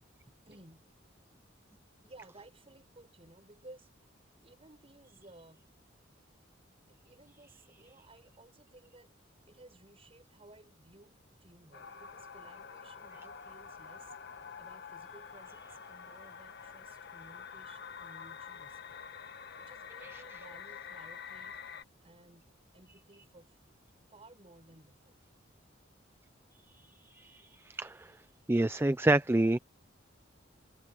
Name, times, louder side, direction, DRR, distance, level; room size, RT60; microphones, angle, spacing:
voice 1, 0.5-0.9 2.0-3.9 4.4-5.7 7.0-9.1 9.5-14.1 14.6-19.0 19.6-21.6 22.0-22.5 22.7-23.6 24.1-25.2, right 2 dB, 30° right, 5.6 m, -57 dB
sound 1, 11.7-21.8, left 6 dB, 60° left, 1.3 m, -47 dB
voice 2, 27.2-28.1 28.5-29.6, right 1 dB, 10° right, 0.4 m, -28 dB
head